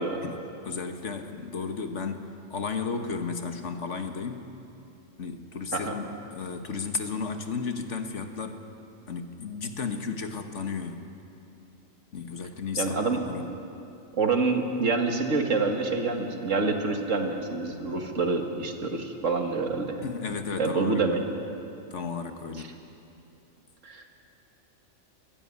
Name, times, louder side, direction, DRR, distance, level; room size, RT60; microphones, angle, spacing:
voice 1, 0.2-4.4 5.2-8.6 9.1-11.1 12.1-13.5 20.0-21.3 21.9-22.7, left 5 dB, 65° left, 6 dB, 1.6 m, -34 dB
voice 2, 12.8-13.2 14.2-20.0 20.6-21.2 23.8-24.0, right 3 dB, 75° right, 3 dB, 2.3 m, -27 dB
21.0 x 16.0 x 9.8 m, 2.7 s
omnidirectional pair, 1.3 m